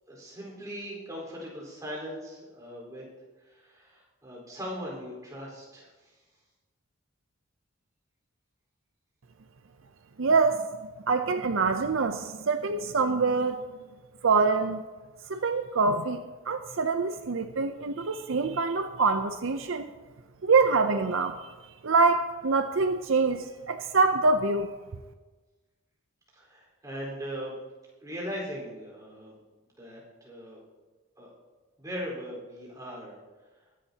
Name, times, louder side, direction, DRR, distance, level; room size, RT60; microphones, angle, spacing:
voice 1, 0.1-3.1 3.4-6.2 26.3-27.5 28.0-29.4 29.8-30.6 31.2-31.3 31.8-33.1, equal, 15° right, -4 dB, 4.4 m, -39 dB
voice 2, 10.2-10.7 11.1-13.6 14.2-14.8 15.3-16.2 16.5-19.9 20.4-21.5 21.8-24.7, right 4 dB, 70° right, 7 dB, 0.6 m, -25 dB
21.5 x 11.0 x 2.9 m, 1.3 s
head